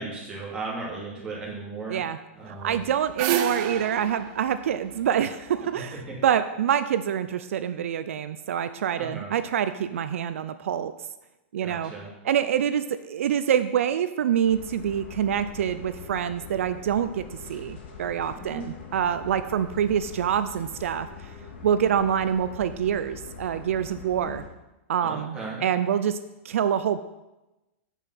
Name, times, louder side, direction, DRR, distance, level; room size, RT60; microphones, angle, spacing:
voice 1, 0.0-2.0 2.3-2.9 3.7-3.8 5.7-6.1 9.0-9.3 11.6-12.1 18.3-18.7 25.0-25.7, right 3 dB, 15° right, -6 dB, 2.8 m, -36 dB
voice 2, 2.5-6.0 6.2-10.9 11.5-11.9 12.2-17.2 17.5-21.1 21.6-24.4 24.9-26.2 26.4-27.0, right 9 dB, 85° right, 11 dB, 0.5 m, -26 dB
sound 1, 2.7-5.8, right 9 dB, 35° right, 0.6 m, -30 dB
sound 2, 14.4-24.5, left 5 dB, 60° left, 2.5 m, -43 dB
8.2 x 5.5 x 5.9 m, 1.0 s
supercardioid pair, 165°, 7 cm